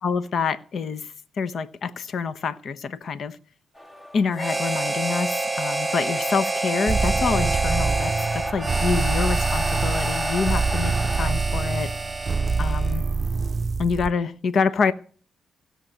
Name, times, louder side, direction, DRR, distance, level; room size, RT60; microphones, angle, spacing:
voice 1, 0.0-3.4 4.1-11.9 12.6-13.0 13.8-14.9, left 5 dB, 60° left, 1.0 m, -26 dB
sound 1, 3.8-11.3, equal, 35° left, 3.3 m, -36 dB
Harmonica, 4.4-13.0, right 2 dB, 15° right, 1.2 m, -28 dB
sound 2, 6.9-14.1, right 4 dB, 40° right, 0.6 m, -25 dB
16.5 x 6.8 x 9.0 m
cardioid pair, 80°, 0 cm